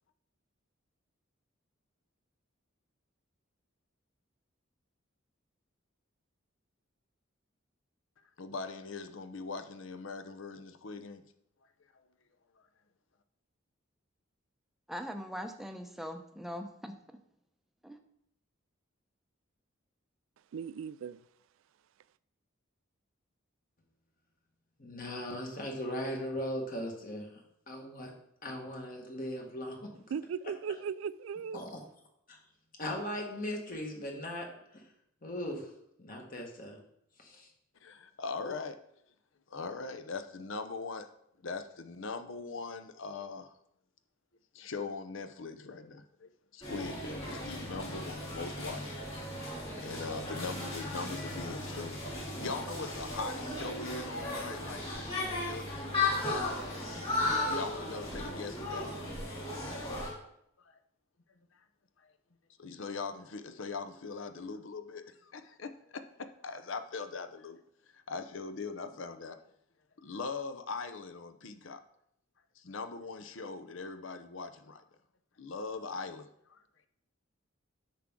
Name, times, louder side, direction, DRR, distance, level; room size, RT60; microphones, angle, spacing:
voice 1, 8.4-11.2 11.9-12.1 37.8-38.8 39.5-41.1 41.4-43.5 44.5-49.1 49.4-57.0 57.5-58.9 60.6-60.8 62.0-62.1 62.6-67.6 67.9-69.4 70.0-71.8 72.6-74.8 75.4-76.6, left 4 dB, 70° left, 0.7 m, -41 dB
voice 2, 14.9-17.0 17.8-18.0, equal, ahead, 0.7 m, -41 dB
voice 3, 20.5-21.2 30.1-31.6, right 7 dB, 75° right, 0.3 m, -37 dB
voice 4, 24.8-27.3 27.7-28.1 28.4-29.8 31.5-31.8 32.3-32.4 32.8-34.5 34.7-34.8 35.2-35.7 36.0-36.8 37.2-37.5, equal, 45° left, 1.7 m, -38 dB
sound 1, 46.6-60.1, left 2 dB, 30° left, 3.2 m, -36 dB
9.8 x 6.0 x 3.7 m
head